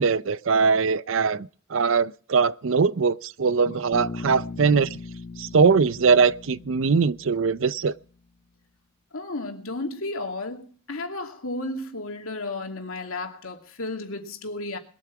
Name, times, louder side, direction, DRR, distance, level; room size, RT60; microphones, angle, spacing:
voice 1, 0.0-4.9 5.4-7.9, right 5 dB, 65° right, 0.6 m, -21 dB
Bass guitar, 3.9-8.0, left 3 dB, 45° left, 0.7 m, -39 dB
voice 2, 9.1-14.8, left 2 dB, 85° left, 2.6 m, -33 dB
21.0 x 8.4 x 5.9 m
head